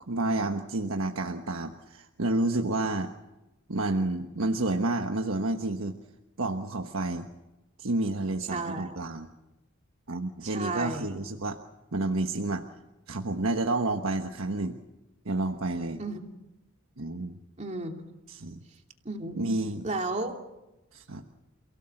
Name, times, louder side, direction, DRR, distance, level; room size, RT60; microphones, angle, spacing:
voice 1, 0.1-3.1 3.7-6.0 6.4-7.3 7.8-9.3 10.1-11.6 11.9-12.6 13.1-14.8 15.2-16.0 17.0-17.4 18.3-18.6 19.3-19.8 20.9-21.2, right 2 dB, 90° right, 4 dB, 1.3 m, -30 dB
voice 2, 8.5-9.0 10.4-11.0 16.0-16.2 17.6-17.9 19.0-19.3 19.8-20.4, right 2 dB, 35° right, 3 dB, 2.8 m, -33 dB
29.0 x 17.0 x 7.8 m, 1.0 s
head